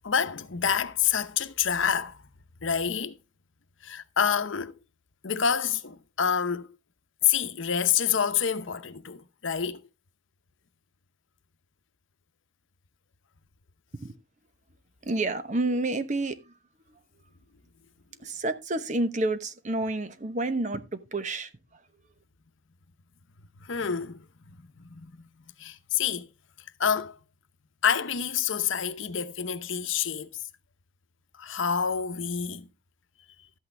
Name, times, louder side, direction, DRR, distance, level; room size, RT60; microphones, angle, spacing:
voice 1, 0.0-2.2 2.6-3.2 3.8-4.7 5.2-6.7 7.2-9.8 23.6-25.3 25.6-26.3 26.8-27.2 27.8-30.4 31.4-32.7, left 7 dB, 75° left, 0.8 m, -28 dB
voice 2, 15.0-16.5 18.2-21.8, right 2 dB, 40° right, 1.0 m, -29 dB
13.0 x 8.5 x 3.3 m
head